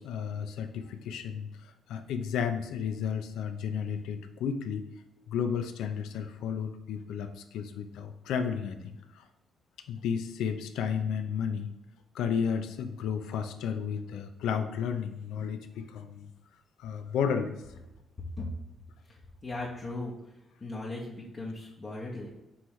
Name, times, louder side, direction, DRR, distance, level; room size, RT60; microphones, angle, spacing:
voice 1, 0.0-4.9 5.3-9.2 9.9-11.7 12.1-16.3 16.8-17.5, left 7 dB, 85° left, 7 dB, 0.4 m, -33 dB
voice 2, 19.4-20.1 20.6-22.3, left 2 dB, 30° left, -5 dB, 0.8 m, -37 dB
5.4 x 3.0 x 3.1 m, 0.94 s
cardioid pair, 90°, 0 cm